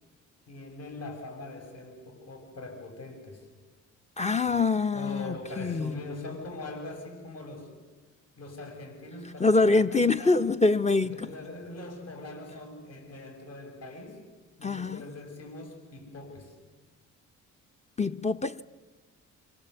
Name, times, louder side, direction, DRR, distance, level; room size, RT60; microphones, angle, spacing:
voice 1, 0.5-3.5 4.4-4.6 4.9-7.7 8.4-10.4 11.1-14.2 14.6-16.6, left 2 dB, 55° left, 7.0 m, -42 dB
voice 2, 4.2-6.0 9.4-11.3 14.6-15.1 18.0-18.6, left 3 dB, 20° left, 0.9 m, -25 dB
27.0 x 26.0 x 8.0 m
cardioid pair, 90°, 30 cm